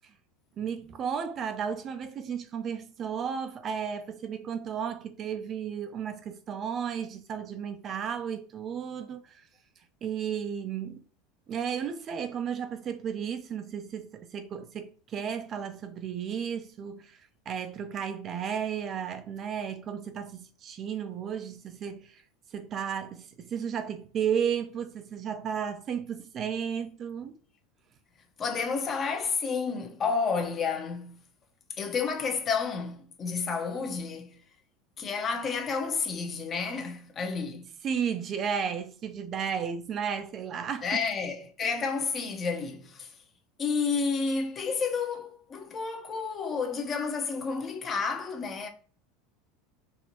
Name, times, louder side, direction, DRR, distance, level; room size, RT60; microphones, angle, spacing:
voice 1, 0.6-9.4 10.0-11.0 11.5-22.2 22.5-27.4 37.8-41.1, right 7 dB, 35° right, 0.4 m, -33 dB
voice 2, 28.4-31.2 31.8-34.4 35.0-37.7 40.8-43.1 43.6-48.7, left 5 dB, 30° left, 0.8 m, -30 dB
4.3 x 2.5 x 2.9 m
supercardioid pair, 120°, 0 cm